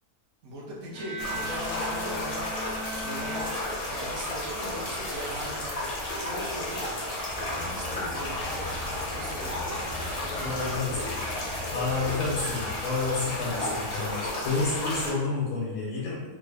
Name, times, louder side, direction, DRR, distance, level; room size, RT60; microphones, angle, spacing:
voice 1, 0.4-2.5 3.0-6.8 7.5-10.8, right 1 dB, 60° right, -3 dB, 1.0 m, -40 dB
Bowed string instrument, 0.9-4.3, right 1 dB, 75° right, 1.3 m, -38 dB
sound 1, 1.2-15.1, left 1 dB, 55° left, 0.4 m, -33 dB
Car, 7.3-12.8, left 2 dB, 35° right, 0.5 m, -41 dB
voice 2, 10.4-11.0 11.7-16.2, left 3 dB, 80° left, -5 dB, 1.3 m, -30 dB
3.5 x 2.1 x 3.4 m, 1.2 s
omnidirectional pair, 1.6 m